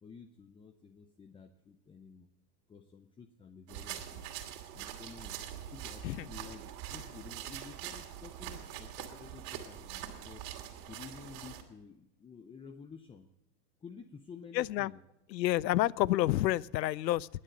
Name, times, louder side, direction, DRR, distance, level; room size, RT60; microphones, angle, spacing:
voice 1, 0.0-2.3 2.7-5.4 5.7-10.4 10.9-13.3 13.8-15.0, left 5 dB, 10° left, 0.5 m, -51 dB
sound 1, 3.7-11.6, right 10 dB, 60° right, 2.7 m, -44 dB
voice 2, 14.5-14.9 15.3-17.3, left 15 dB, 90° left, 0.6 m, -29 dB
21.0 x 7.5 x 7.7 m
hypercardioid pair, 115°, 49 cm